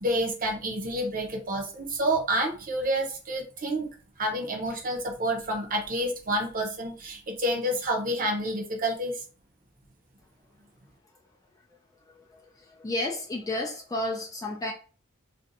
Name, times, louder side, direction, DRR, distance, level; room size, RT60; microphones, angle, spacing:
voice 1, 0.0-3.9 4.2-9.1, right 1 dB, 40° right, 0.8 m, -29 dB
voice 2, 12.1-14.7, left 1 dB, 15° left, 0.3 m, -32 dB
2.6 x 2.2 x 3.9 m
head